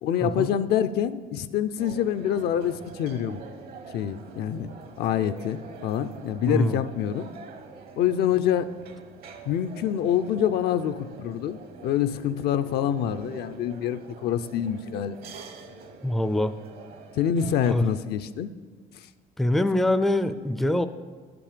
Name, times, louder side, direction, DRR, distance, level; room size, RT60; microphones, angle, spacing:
voice 1, 0.0-3.4 3.9-4.7 5.0-7.3 8.0-8.7 9.5-15.2 17.1-18.5, left 9 dB, 75° left, 11 dB, 0.5 m, -26 dB
sound 1, 1.8-18.0, right 4 dB, 65° right, 1.1 m, -45 dB
voice 2, 6.5-6.8 16.0-16.5 17.7-17.8 19.4-20.9, left 1 dB, ahead, 11 dB, 0.4 m, -24 dB
11.5 x 6.0 x 6.7 m, 1.5 s
cardioid pair, 110°, 17 cm